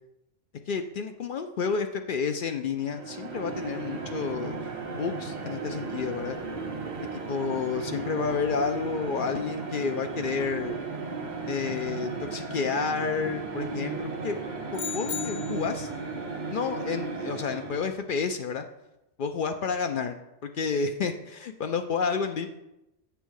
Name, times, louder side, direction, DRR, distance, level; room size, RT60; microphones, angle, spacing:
voice 1, 0.7-4.6 4.9-6.4 7.1-10.8 11.5-14.4 14.7-15.9 16.5-18.6 19.2-22.5, left 5 dB, 60° left, 7 dB, 0.6 m, -30 dB
sound 1, 2.8-18.1, right 4 dB, 45° right, 0.8 m, -35 dB
sound 2, 14.7-15.9, left 10 dB, 90° left, 1.0 m, -36 dB
8.2 x 3.4 x 6.3 m, 0.91 s
omnidirectional pair, 1.2 m